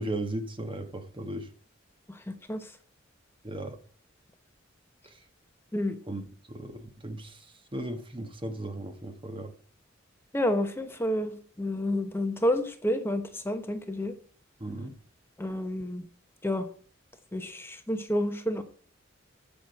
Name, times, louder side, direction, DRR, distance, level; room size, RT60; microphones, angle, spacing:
voice 1, 0.0-1.5 3.4-3.8 6.1-6.2 6.5-7.4 7.7-9.5 14.6-14.9, right 1 dB, 25° right, 1.3 m, -36 dB
voice 2, 2.1-2.7 5.7-6.0 10.3-14.1 15.4-16.0 16.4-16.7 17.3-18.6, left 1 dB, 10° left, 1.0 m, -30 dB
14.5 x 6.1 x 5.9 m
head